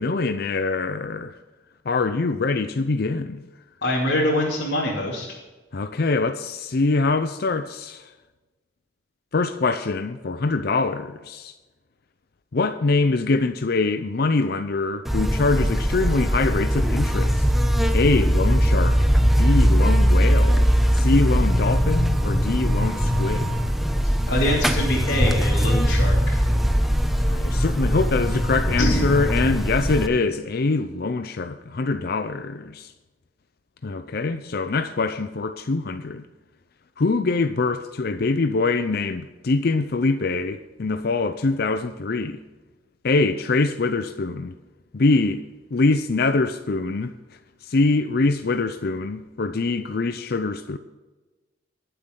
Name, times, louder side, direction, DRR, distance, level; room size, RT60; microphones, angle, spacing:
voice 1, 0.0-1.4 1.9-3.4 5.7-8.1 9.3-11.5 12.5-17.5 17.9-20.7 20.9-23.6 27.3-32.9 33.8-36.2 37.0-42.4 43.0-44.5 44.9-45.4 45.7-47.1 47.6-50.8, left 3 dB, 55° left, 0.6 m, -24 dB
voice 2, 3.8-5.3 24.3-26.4 28.8-29.1, left 1 dB, 70° left, 2.9 m, -24 dB
Buzz, 15.0-30.1, equal, ahead, 0.9 m, -20 dB
21.5 x 7.9 x 3.9 m
head